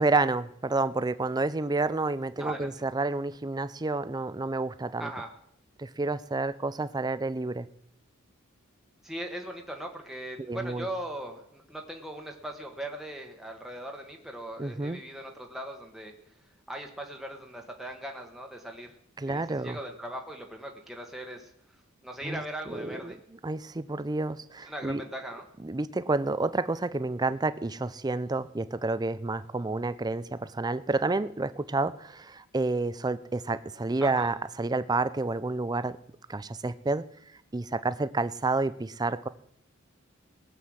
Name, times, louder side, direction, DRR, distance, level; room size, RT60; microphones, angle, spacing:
voice 1, 0.0-5.1 5.8-7.7 10.5-10.9 14.6-15.0 19.2-19.8 22.2-23.1 23.4-25.0 25.6-36.0 36.3-37.0 37.5-39.3, right 3 dB, 20° right, 15 dB, 0.5 m, -29 dB
voice 2, 2.4-2.7 5.0-5.3 9.0-16.1 16.7-18.9 19.2-21.5 22.0-23.2 24.7-25.4 34.0-34.3, right 1 dB, ahead, 2 dB, 1.2 m, -39 dB
19.0 x 7.7 x 6.4 m, 0.72 s
head